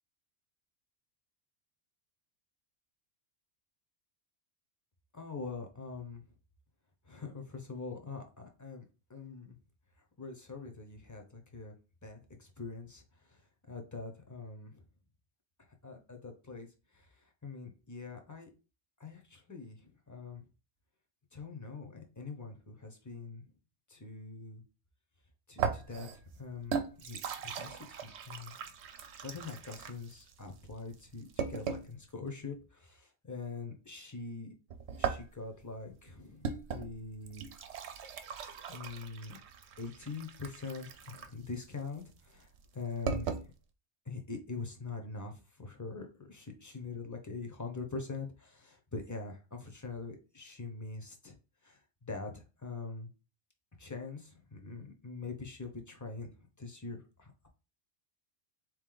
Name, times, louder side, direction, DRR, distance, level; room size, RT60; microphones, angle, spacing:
voice 1, 5.1-6.2 7.1-8.8 9.1-9.6 10.2-11.7 12.0-13.4 13.7-14.8 15.8-16.7 16.9-17.1 17.4-18.5 19.0-20.4 21.3-23.4 23.9-24.6 25.5-26.1 26.4-28.5 29.2-34.5 35.0-37.5 38.7-39.4 39.8-43.4 44.1-51.4 51.6-53.1 53.8-57.5, left 4 dB, 20° left, 4 dB, 0.7 m, -43 dB
sound 1, 25.6-32.0 34.7-43.5, right 6 dB, 75° right, 0.9 m, -39 dB
4.0 x 3.1 x 3.9 m, 0.32 s
omnidirectional pair, 1.1 m